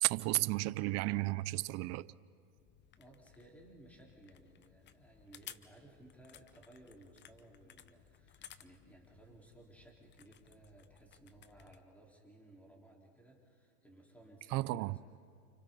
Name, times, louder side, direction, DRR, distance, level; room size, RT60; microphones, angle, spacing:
voice 1, 0.0-2.1 14.5-15.0, right 20 dB, 35° right, 0.5 m, -33 dB
sound 1, 2.6-11.8, left 10 dB, 25° left, 0.8 m, -58 dB
voice 2, 3.0-15.0, right 1 dB, 5° left, 4.7 m, -59 dB
30.0 x 29.0 x 4.2 m
hypercardioid pair, 115°, 46 cm